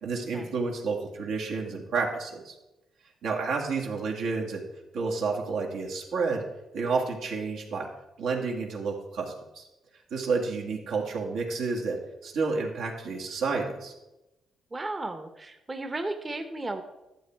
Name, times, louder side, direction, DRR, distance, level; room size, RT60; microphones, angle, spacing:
voice 1, 0.0-2.6 3.2-4.6 4.9-6.4 6.7-7.9 8.2-9.6 10.1-12.0 12.2-13.9, right 4 dB, 80° right, 0 dB, 2.0 m, -30 dB
voice 2, 14.7-16.8, right 2 dB, 20° right, 6 dB, 0.9 m, -34 dB
12.0 x 7.5 x 4.6 m, 0.98 s
cardioid pair, 90°, 0 cm